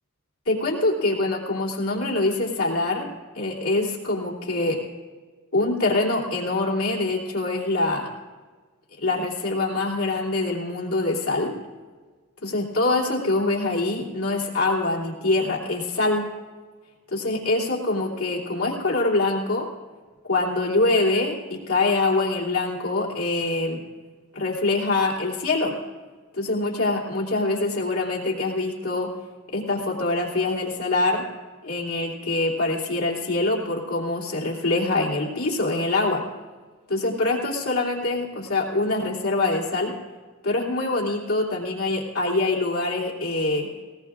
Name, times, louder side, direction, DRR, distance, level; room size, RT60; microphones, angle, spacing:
voice 1, 0.5-3.1 3.3-4.8 5.5-8.1 9.0-11.6 12.4-16.3 17.1-19.7 20.3-23.8 24.3-25.8 26.3-29.1 29.5-31.2 31.6-36.3 36.9-39.9 40.4-43.7, left 2 dB, 85° left, -4 dB, 3.0 m, -24 dB
19.5 x 19.5 x 2.5 m, 1.4 s
head